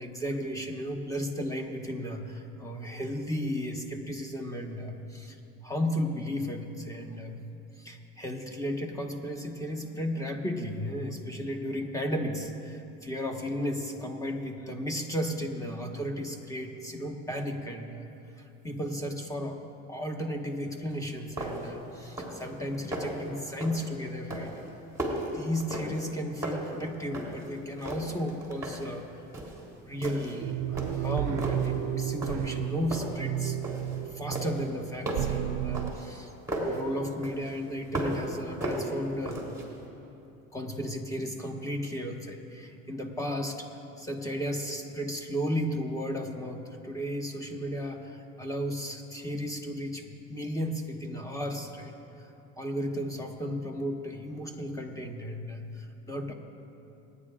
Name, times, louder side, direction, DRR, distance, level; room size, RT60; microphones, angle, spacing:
voice 1, 0.0-5.4 5.6-7.4 7.8-18.1 18.3-19.6 19.9-24.5 25.0-29.2 29.5-33.6 34.1-36.3 36.6-39.4 40.5-43.7 44.0-51.9 52.6-56.3, equal, 10° left, 3 dB, 1.4 m, -34 dB
sound 1, 20.9-21.0 21.4-21.8 22.0-22.5 22.7-23.2 23.6-23.9 24.3-26.1 26.4-27.5 27.8-28.9 29.3-29.6 30.0-30.4 30.8-31.7 32.2-32.6 32.9-34.0 34.3-36.8 37.2-38.3 38.6-39.7, right 1 dB, 10° right, 3.3 m, -35 dB
sound 2, 30.4-35.9, right 13 dB, 60° right, 0.4 m, -32 dB
28.5 x 9.7 x 2.5 m, 2.8 s
supercardioid pair, 100°, 30 cm